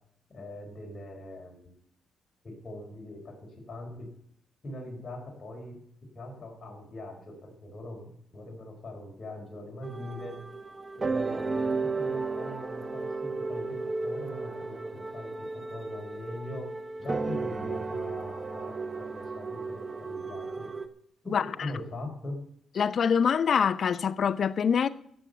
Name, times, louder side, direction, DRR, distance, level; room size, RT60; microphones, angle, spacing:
voice 1, 0.3-1.7 2.4-4.1 4.6-5.8 6.1-10.4 11.0-16.7 17.0-20.7 21.2-22.4, left 1 dB, 40° left, 5.1 m, -42 dB
sound 1, 9.8-20.9, right 3 dB, 30° right, 1.2 m, -34 dB
voice 2, 22.8-24.9, left 7 dB, 55° left, 0.7 m, -24 dB
15.0 x 7.5 x 6.9 m
cardioid pair, 75°, 0 cm